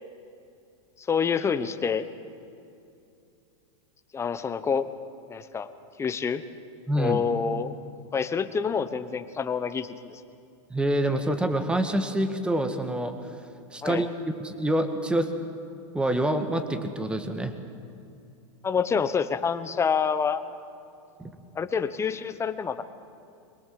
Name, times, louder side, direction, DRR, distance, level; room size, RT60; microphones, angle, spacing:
voice 1, 1.0-2.1 4.1-4.8 5.3-5.7 6.0-6.4 6.9-7.7 8.1-10.2 13.8-14.1 18.6-20.4 21.5-22.8, left 6 dB, 15° left, 11 dB, 1.1 m, -27 dB
voice 2, 6.9-7.2 10.7-13.1 13.7-14.1 14.4-15.3 15.9-17.5 21.2-21.3, right 1 dB, 5° right, 8 dB, 1.7 m, -26 dB
24.5 x 21.5 x 7.7 m, 2.6 s
supercardioid pair, 135°, 17 cm